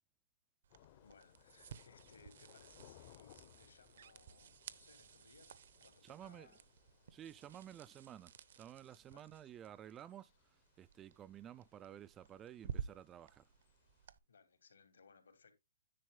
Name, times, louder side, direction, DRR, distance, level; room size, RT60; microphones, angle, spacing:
sound 1, 0.6-14.2, right 8 dB, 60° right, 0.8 m, -54 dB
Thunder / Rain, 0.7-14.1, left 14 dB, 40° left, 0.7 m, -67 dB
voice 1, 1.0-6.6 9.1-9.3 14.3-15.5, left 5 dB, 80° left, 2.7 m, -65 dB
voice 2, 6.0-6.5 7.1-13.5, right 10 dB, 20° right, 0.3 m, -53 dB
10.0 x 4.2 x 3.8 m
hypercardioid pair, 145°, 0 cm